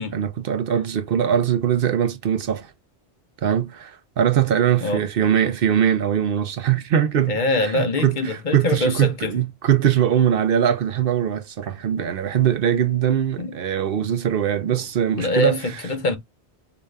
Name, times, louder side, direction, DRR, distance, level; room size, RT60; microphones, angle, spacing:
voice 1, 0.1-2.7 3.4-15.8, right 9 dB, 60° right, 0.8 m, -21 dB
voice 2, 7.3-9.3 13.4-13.5 15.2-16.2, left 2 dB, 50° left, 1.0 m, -23 dB
4.0 x 2.5 x 3.2 m
omnidirectional pair, 1.1 m